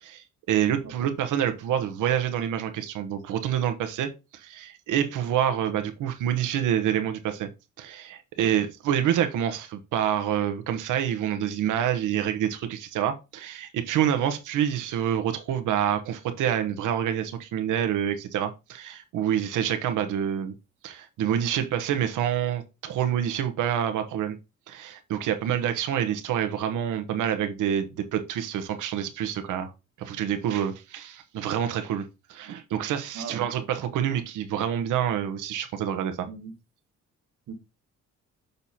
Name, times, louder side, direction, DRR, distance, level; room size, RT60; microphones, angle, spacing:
voice 1, 0.0-7.5 7.8-20.5 20.8-24.4 24.7-29.7 30.0-36.3, right 9 dB, 85° right, 1.2 m, -27 dB
voice 2, 33.1-33.6 36.3-36.5 37.5-37.6, right 6 dB, 60° right, 1.7 m, -39 dB
6.9 x 4.3 x 4.2 m
cardioid pair, 90°, 30 cm